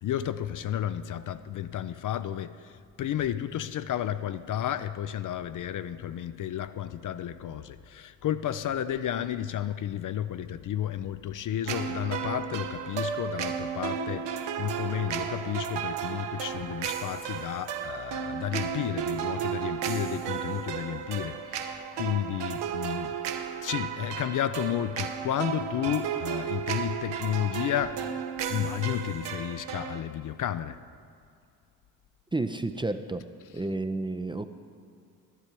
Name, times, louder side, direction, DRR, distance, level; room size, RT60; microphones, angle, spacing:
voice 1, 0.0-23.1 23.6-28.0 28.5-30.8, left 11 dB, 45° left, 12 dB, 0.5 m, -32 dB
sound 1, 11.7-30.0, right 8 dB, 70° right, 0.9 m, -33 dB
voice 2, 32.3-33.2 33.5-34.4, right 2 dB, 10° right, 9 dB, 0.5 m, -31 dB
12.5 x 10.0 x 4.5 m, 2.4 s
hypercardioid pair, 50°, 44 cm